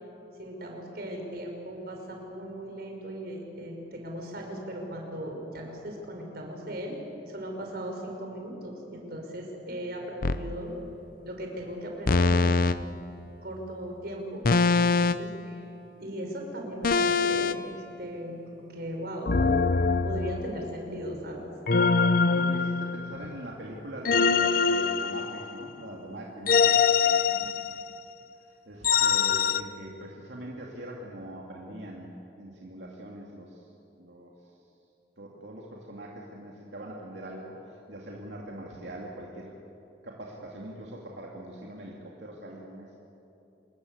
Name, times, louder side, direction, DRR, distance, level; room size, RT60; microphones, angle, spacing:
voice 1, 0.4-7.0 7.3-10.7 11.2-13.1 13.4-14.4 14.8-15.7 16.0-19.3 20.0-21.5 27.3-27.5, equal, 60° right, 1 dB, 5.4 m, -38 dB
sound 1, 10.2-10.5 12.1-12.8 14.4-15.3 16.8-17.6 19.3-20.7 21.7-23.2 24.0-25.7 26.5-28.0 28.8-29.6, left 5 dB, 55° left, 0.7 m, -23 dB
voice 2, 22.3-27.2 28.7-33.5 34.0-34.3 35.2-37.5 37.9-39.5 40.0-43.0, right 1 dB, 85° right, -2 dB, 2.6 m, -42 dB
26.5 x 21.0 x 8.1 m, 2.8 s
head